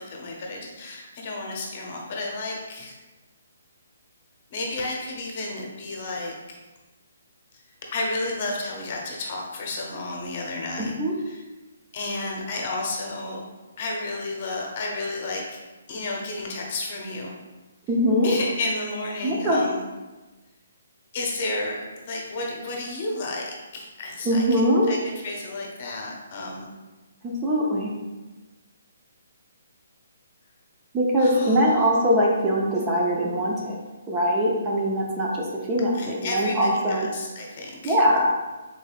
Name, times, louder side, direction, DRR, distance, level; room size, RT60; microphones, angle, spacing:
voice 1, 0.0-3.0 4.5-6.6 7.9-10.9 11.3-11.4 11.9-13.4 13.8-15.6 15.9-17.4 18.2-19.8 21.1-24.6 24.9-25.0 25.2-26.7 31.2-31.6 35.9-38.0, left 2 dB, 45° left, -1 dB, 0.9 m, -32 dB
voice 2, 10.8-11.1 17.9-18.3 19.2-19.6 24.2-24.9 27.2-27.9 30.9-33.8 34.1-37.1 37.8-38.3, equal, 20° right, -3 dB, 0.7 m, -22 dB
4.7 x 3.9 x 2.4 m, 1.2 s
hypercardioid pair, 150°, 0 cm